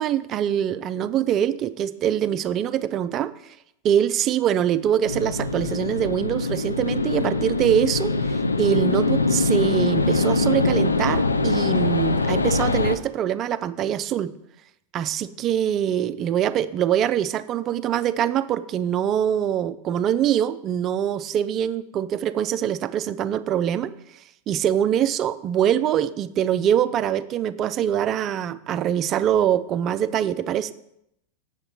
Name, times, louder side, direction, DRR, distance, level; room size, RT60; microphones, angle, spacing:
voice 1, 0.0-3.3 3.8-8.1 8.6-14.3 14.9-23.9 24.5-30.7, right 10 dB, 30° right, 13 dB, 0.4 m, -23 dB
sound 1, 5.0-13.0, left 3 dB, 80° left, 0.4 m, -23 dB
7.8 x 7.2 x 4.1 m, 0.78 s
figure-of-eight pair, 90°, 0 cm